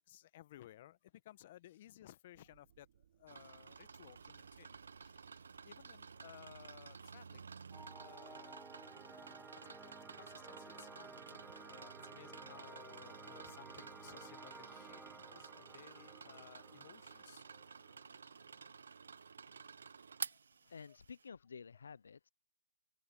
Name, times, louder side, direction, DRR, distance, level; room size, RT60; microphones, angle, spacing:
voice 1, 0.0-2.9 3.2-7.5 7.9-8.6 9.6-17.4 19.5-19.7 20.2-21.0, left 13 dB, 35° left, 1.0 m, -59 dB
sound 1, 2.3-10.1, right 10 dB, 40° right, 3.8 m, -74 dB
sound 2, 3.3-21.2, right 5 dB, 65° right, 0.9 m, -52 dB
sound 3, 7.7-18.8, right 3 dB, 5° right, 1.1 m, -56 dB
voice 2, 20.7-22.3, left 6 dB, 65° left, 0.5 m, -52 dB
open air
hypercardioid pair, 155°, 0 cm